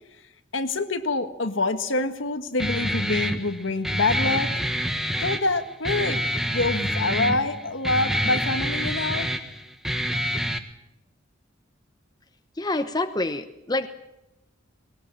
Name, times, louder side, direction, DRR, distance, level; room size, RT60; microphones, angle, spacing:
voice 1, 0.5-4.5 5.2-6.2 6.5-9.3, left 2 dB, 75° left, 8 dB, 1.7 m, -26 dB
Guitar, 2.6-10.6, equal, ahead, 1.4 m, -27 dB
voice 2, 12.6-13.9, left 2 dB, 20° left, 8 dB, 1.0 m, -27 dB
20.0 x 20.0 x 8.8 m, 0.92 s
head